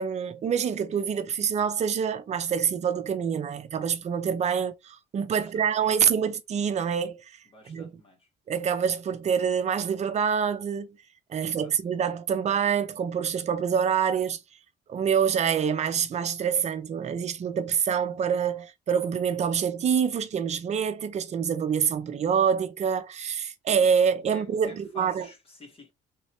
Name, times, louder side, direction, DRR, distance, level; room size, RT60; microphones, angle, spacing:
voice 1, 0.0-7.2 7.7-7.9 8.5-11.0 11.3-14.4 14.9-25.3, right 7 dB, 40° right, 0.7 m, -26 dB
voice 2, 5.3-5.9 7.5-8.3 11.4-11.7 24.3-25.9, left 2 dB, 35° left, 1.6 m, -50 dB
3.7 x 2.9 x 3.2 m
cardioid pair, 110°, 17 cm